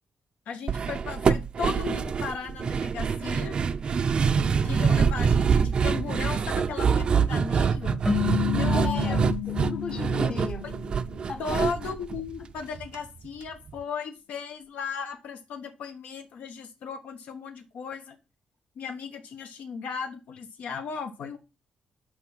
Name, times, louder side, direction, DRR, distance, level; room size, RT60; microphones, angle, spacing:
voice 1, 0.5-3.6 4.6-8.0 8.5-9.4 11.4-18.2 18.8-21.4, left 6 dB, 85° left, 1.0 m, -36 dB
sound 1, 0.7-13.0 13.2-13.3 13.7-13.8, right 6 dB, 40° right, 0.4 m, -25 dB
voice 2, 4.4-4.8 8.4-10.6 11.3-11.4, left 5 dB, 40° left, 1.1 m, -36 dB
sound 2, 8.0-11.4, left 9 dB, ahead, 0.8 m, -31 dB
6.0 x 4.8 x 5.9 m
wide cardioid pair, 150°, 2 cm